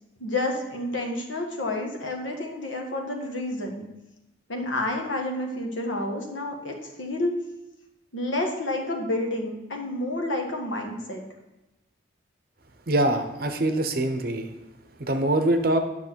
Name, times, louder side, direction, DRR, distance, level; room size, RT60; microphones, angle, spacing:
voice 1, 0.2-3.8 4.5-7.3 8.1-11.2, left 1 dB, 80° left, 2 dB, 1.5 m, -29 dB
voice 2, 12.9-14.5 15.0-15.8, right 1 dB, 50° right, 6 dB, 0.8 m, -24 dB
9.9 x 6.0 x 4.5 m, 0.99 s
head